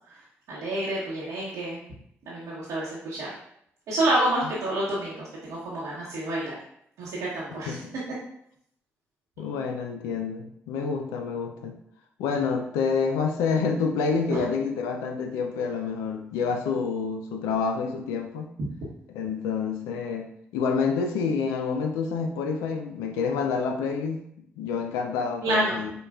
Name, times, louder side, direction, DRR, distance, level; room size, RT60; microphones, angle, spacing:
voice 1, 0.5-1.8 2.3-3.3 3.9-6.6 7.0-7.8 14.3-14.4 25.4-25.8, right 1 dB, 80° right, -7 dB, 0.8 m, -28 dB
voice 2, 9.4-11.7 12.2-18.5 19.1-24.2 24.6-25.9, left 5 dB, 90° left, 5 dB, 0.4 m, -28 dB
5.1 x 2.2 x 2.3 m, 0.71 s
supercardioid pair, 45°, 6 cm